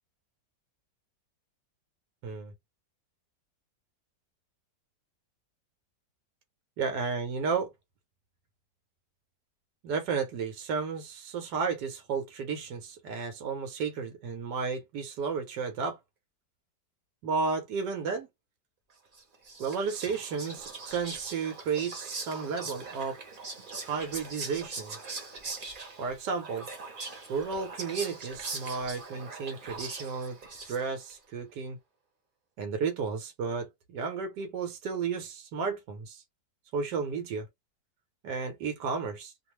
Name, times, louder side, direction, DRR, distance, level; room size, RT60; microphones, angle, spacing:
voice 1, 6.8-7.7 9.8-16.0 17.2-18.3 19.6-23.2 23.9-25.0 26.0-26.7 27.3-30.4 30.7-31.8 32.6-36.2 36.7-37.5 38.2-39.3, right 5 dB, 80° right, 1.4 m, -33 dB
Whispering, 19.1-31.1, right 3 dB, 40° right, 0.8 m, -41 dB
3.1 x 2.0 x 3.0 m
omnidirectional pair, 1.8 m